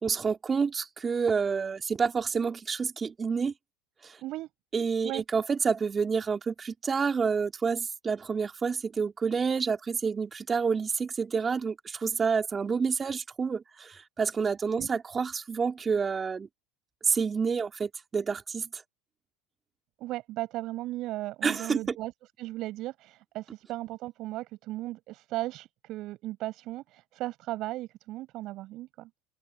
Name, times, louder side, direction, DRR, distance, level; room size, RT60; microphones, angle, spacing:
voice 1, 0.0-3.5 4.0-4.2 4.7-16.5 17.0-18.8 21.4-21.8, right 5 dB, 25° right, 3.6 m, -28 dB
voice 2, 20.0-22.1 22.4-29.1, right 16 dB, 55° right, 6.4 m, -36 dB
open air
hypercardioid pair, 85°, 0 cm